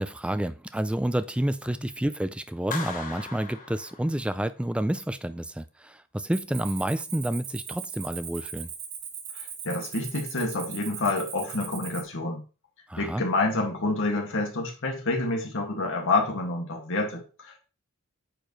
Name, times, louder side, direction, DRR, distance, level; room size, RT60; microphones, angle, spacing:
voice 1, 0.0-8.7 12.9-13.2, right 1 dB, 5° right, 0.3 m, -29 dB
Clapping, 2.7-4.6, left 4 dB, 40° left, 1.2 m, -38 dB
Cricket, 6.3-12.0, right 7 dB, 75° right, 1.6 m, -39 dB
voice 2, 9.3-12.4 13.0-17.6, left 2 dB, 60° left, 2.0 m, -28 dB
8.7 x 4.7 x 3.1 m
head